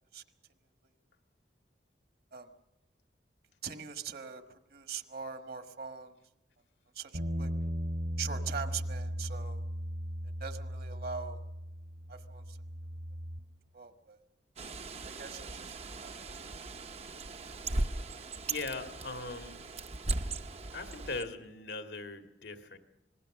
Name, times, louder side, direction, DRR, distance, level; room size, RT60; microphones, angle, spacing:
voice 1, 3.6-6.1 6.9-7.5 8.2-9.6 10.4-11.4 12.1-12.6 13.7-14.2 15.0-16.3, right 6 dB, 55° right, 8 dB, 1.4 m, -42 dB
sound 1, 7.1-13.4, equal, 75° right, 2.3 m, -37 dB
Bird, 14.6-21.2, right 2 dB, 35° right, 0.7 m, -38 dB
voice 2, 18.4-19.6 20.7-22.8, left 3 dB, 80° left, 6 dB, 1.9 m, -40 dB
26.0 x 20.0 x 6.4 m, 0.91 s
head